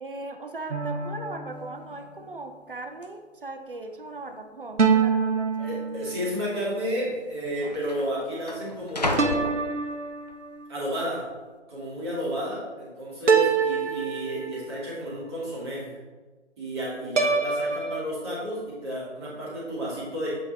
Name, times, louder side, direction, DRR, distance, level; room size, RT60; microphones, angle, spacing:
voice 1, 0.0-5.7, right 2 dB, 50° right, 6 dB, 0.5 m, -38 dB
sound 1, 0.7-2.4 4.8-6.5 9.2-10.7 13.3-14.9 17.2-18.0, right 5 dB, 80° right, 0.7 m, -26 dB
sound 2, 1.6-1.7 1.9-2.3 3.0-3.1 3.9-4.4 4.6-4.8 5.6-5.8 6.8-6.9 7.1-10.3 10.8-11.2, left 1 dB, 35° left, 0.4 m, -34 dB
voice 2, 5.6-9.5 10.7-11.2 11.7-15.9 16.6-20.4, equal, 20° right, -7 dB, 1.9 m, -32 dB
7.6 x 3.6 x 4.0 m, 1.3 s
figure-of-eight pair, 150°, 36 cm